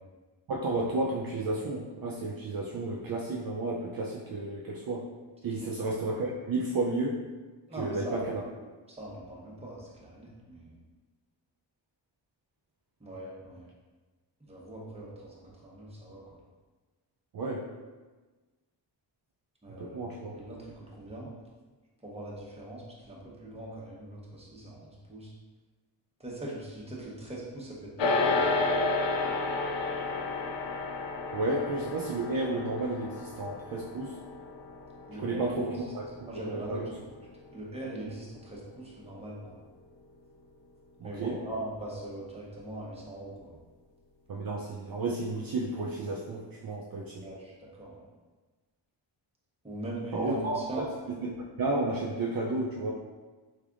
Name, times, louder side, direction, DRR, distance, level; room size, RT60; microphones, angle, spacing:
voice 1, 0.5-5.0 5.4-7.2 7.7-8.4 17.3-17.7 19.7-20.3 31.3-34.2 35.2-36.9 41.0-41.4 44.3-47.3 50.1-52.9, right 2 dB, 55° right, -3 dB, 0.5 m, -32 dB
voice 2, 7.7-8.2 8.9-10.8 13.0-13.7 14.5-16.2 19.6-21.3 22.0-25.3 26.2-28.6 35.1-35.4 36.3-37.0 37.5-39.5 41.0-43.6 47.2-48.0 49.6-50.9, right 1 dB, 15° right, -5 dB, 1.0 m, -41 dB
Large Cymbal - Felt, 28.0-37.5, left 3 dB, 75° left, 0.6 m, -32 dB
3.5 x 3.3 x 2.5 m, 1.3 s
cardioid pair, 75°, 45 cm